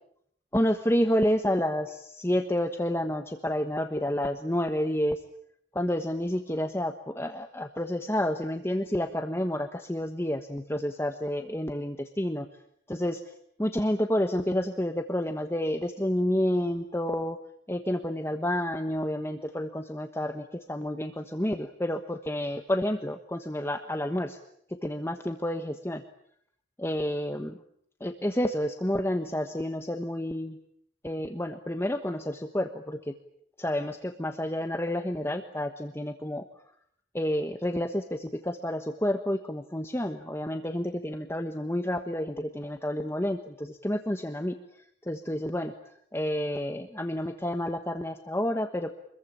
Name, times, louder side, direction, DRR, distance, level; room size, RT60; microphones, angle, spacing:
voice 1, 0.5-5.2 5.7-12.5 12.9-13.2 13.6-17.4 17.7-24.4 24.7-26.0 26.8-27.6 28.0-30.6 31.0-33.1 33.6-36.4 37.1-44.6 45.1-45.7 46.1-48.9, left 1 dB, 15° left, 5 dB, 1.2 m, -29 dB
25.5 x 22.0 x 8.7 m, 0.69 s
head